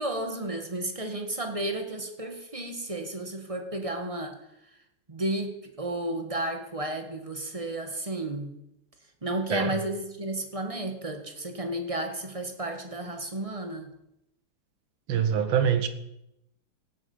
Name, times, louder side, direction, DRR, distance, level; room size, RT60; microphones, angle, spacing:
voice 1, 0.0-4.4 5.1-8.5 9.2-13.9, right 1 dB, 20° right, 5 dB, 1.2 m, -32 dB
voice 2, 15.1-15.9, right 8 dB, 65° right, 11 dB, 1.7 m, -24 dB
16.5 x 8.5 x 5.4 m, 0.83 s
omnidirectional pair, 2.4 m